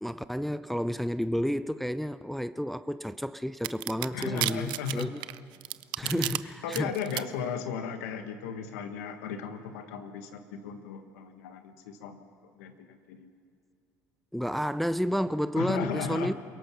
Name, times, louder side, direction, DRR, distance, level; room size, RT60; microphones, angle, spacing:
voice 1, 0.0-5.2 6.0-6.9 14.3-16.3, equal, ahead, 0.5 m, -31 dB
sound 1, 3.6-6.4 6.7-7.2, right 18 dB, 70° right, 0.5 m, -31 dB
voice 2, 4.1-5.2 6.0-6.4 6.6-12.2 12.6-13.3 15.5-16.3, left 7 dB, 90° left, 1.4 m, -36 dB
28.5 x 17.5 x 5.9 m
supercardioid pair, 80°, 8 cm